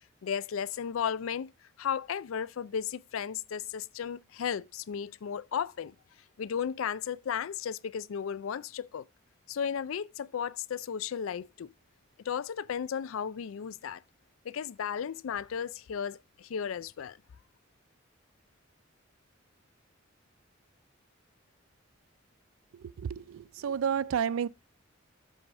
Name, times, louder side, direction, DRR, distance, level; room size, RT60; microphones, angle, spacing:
voice 1, 0.2-1.5 1.8-5.9 6.4-9.0 9.5-11.7 12.2-14.0 14.4-17.2, left 7 dB, 80° left, 0.4 m, -34 dB
voice 2, 22.7-24.5, right 8 dB, 85° right, 0.4 m, -31 dB
7.7 x 4.8 x 5.8 m
head